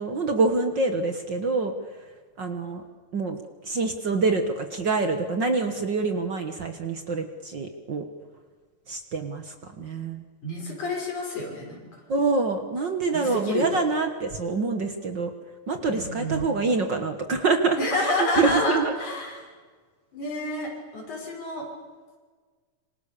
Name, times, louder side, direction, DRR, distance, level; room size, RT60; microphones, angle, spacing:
voice 1, 0.0-1.7 2.4-2.8 3.1-3.4 3.6-8.0 8.9-10.2 12.1-15.3 15.7-19.0, right 3 dB, 45° right, 6 dB, 1.8 m, -26 dB
voice 2, 10.4-11.8 13.1-13.8 15.9-16.6 17.8-19.5 20.1-21.7, left 2 dB, 80° left, -1 dB, 7.5 m, -29 dB
27.0 x 26.0 x 6.8 m, 1.5 s
omnidirectional pair, 3.4 m